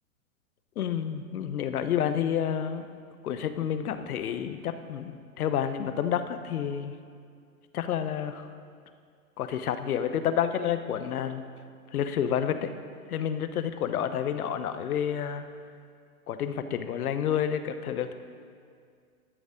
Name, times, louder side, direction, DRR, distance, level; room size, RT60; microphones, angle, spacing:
voice 1, 0.8-2.9 3.2-6.9 7.7-8.5 9.4-11.4 11.9-12.7 13.1-15.4 16.3-18.1, left 9 dB, 75° left, 10 dB, 0.9 m, -29 dB
12.5 x 7.2 x 5.1 m, 2.2 s
hypercardioid pair, 120°, 45 cm